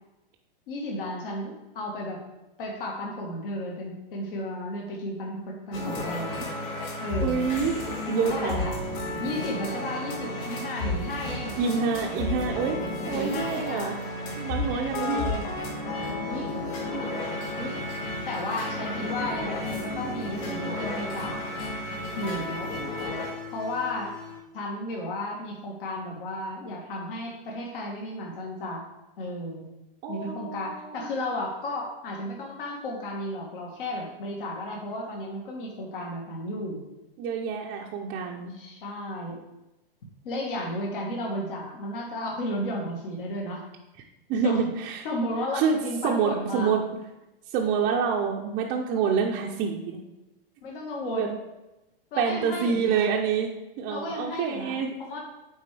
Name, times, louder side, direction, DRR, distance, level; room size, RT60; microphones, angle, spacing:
voice 1, 0.7-2.2 2.6-6.4 7.0-7.5 8.3-8.8 9.2-11.6 13.1-13.9 15.0-15.4 16.3-16.5 17.6-17.8 18.3-21.4 22.2-22.7 23.5-24.1 24.5-28.8 29.2-29.6 30.1-36.8 38.5-39.4 40.2-43.6 44.4-44.6 45.0-46.7 50.6-51.4 52.1-53.1 53.9-54.8 55.1-55.2, left 1 dB, 65° left, -1 dB, 1.6 m, -33 dB
sound 1, 5.7-24.4, left 1 dB, 45° left, 2.4 m, -32 dB
voice 2, 7.2-7.7 8.1-8.6 11.6-12.8 13.1-13.9 14.4-15.3 30.0-31.1 37.2-38.5 44.3-45.1 45.5-45.8 46.0-46.8 47.5-50.0 51.1-51.3 52.2-53.5 53.8-55.0, right 6 dB, 30° right, -1 dB, 0.5 m, -27 dB
9.0 x 3.7 x 3.3 m, 0.98 s
hypercardioid pair, 135°, 29 cm